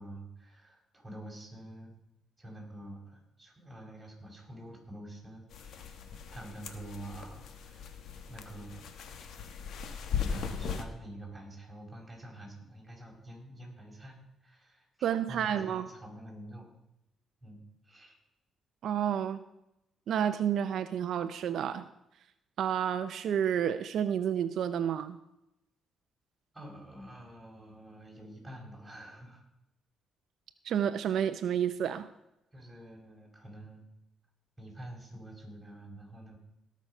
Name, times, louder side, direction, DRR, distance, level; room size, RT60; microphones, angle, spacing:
voice 1, 0.0-1.9 2.4-5.8 6.3-8.0 8.3-8.9 10.1-16.7 17.4-18.2 26.5-29.4 32.5-33.9 34.6-36.4, right 1 dB, 10° right, -1 dB, 5.0 m, -47 dB
sound 1, 5.5-10.8, left 7 dB, 70° left, 1.3 m, -38 dB
voice 2, 15.0-15.9 18.8-19.4 20.1-21.9 22.6-25.2 30.6-32.1, right 9 dB, 70° right, 11 dB, 0.6 m, -30 dB
18.5 x 6.3 x 5.5 m, 0.86 s
cardioid pair, 90°, 0 cm